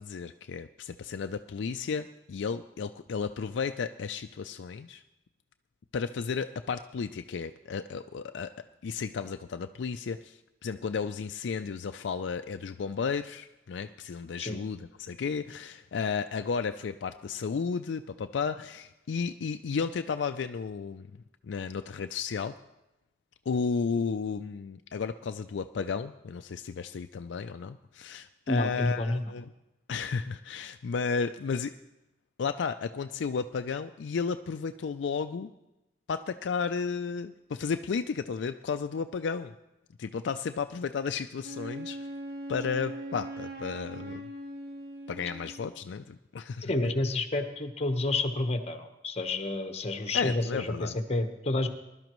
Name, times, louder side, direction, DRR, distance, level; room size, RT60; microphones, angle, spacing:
voice 1, 0.0-5.0 5.9-8.5 8.8-22.5 23.5-29.5 29.9-31.7 32.4-35.5 36.1-39.5 40.0-42.1 42.5-44.3 45.1-46.7 50.1-50.9, left 5 dB, 70° left, 9 dB, 0.4 m, -33 dB
voice 2, 28.5-29.3 46.6-51.7, left 2 dB, 35° left, 7 dB, 1.0 m, -29 dB
Wind instrument woodwind instrument, 41.4-45.8, right 1 dB, 60° right, 1.3 m, -40 dB
20.0 x 12.0 x 3.1 m, 0.95 s
head